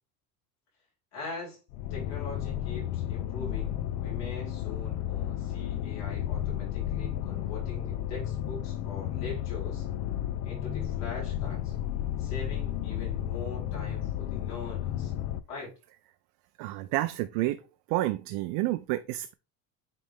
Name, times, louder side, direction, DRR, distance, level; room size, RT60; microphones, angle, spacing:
voice 1, 1.1-1.6 1.9-9.9 10.4-11.7 12.2-15.1 15.5-15.7, left 3 dB, 45° left, 4.1 m, -42 dB
sound 1, 1.7-15.4, left 11 dB, 60° left, 0.5 m, -33 dB
voice 2, 16.6-17.6 17.9-19.3, right 17 dB, 70° right, 0.5 m, -29 dB
8.3 x 3.4 x 3.4 m
cardioid pair, 170°, 38 cm